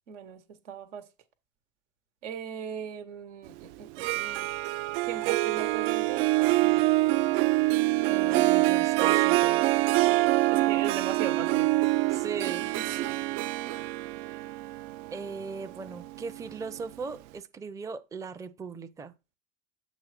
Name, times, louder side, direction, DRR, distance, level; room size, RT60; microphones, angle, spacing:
voice 1, 0.1-1.0 2.2-4.5 5.0-6.9 10.1-11.8 12.8-13.2 14.3-14.4, right 8 dB, 80° right, 1.2 m, -39 dB
Harp, 3.8-16.8, right 19 dB, 60° right, 0.5 m, -25 dB
voice 2, 8.1-9.7 12.1-12.7 15.1-19.1, right 4 dB, 10° right, 0.5 m, -39 dB
7.1 x 3.2 x 5.8 m
hypercardioid pair, 85°, 35 cm